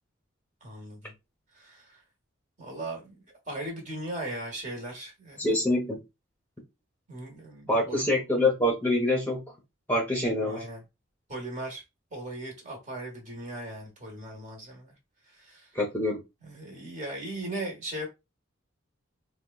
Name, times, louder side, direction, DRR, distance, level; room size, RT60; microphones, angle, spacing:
voice 1, 0.6-1.1 1.5-2.0 2.6-5.6 7.1-8.1 10.4-10.8 11.3-11.8 12.1-14.9 15.2-15.7 16.4-18.1, right 1 dB, 40° right, 1.1 m, -38 dB
voice 2, 5.4-6.0 7.7-9.4 9.9-10.7 15.7-16.2, left 1 dB, 10° left, 0.8 m, -25 dB
4.3 x 2.2 x 2.3 m
head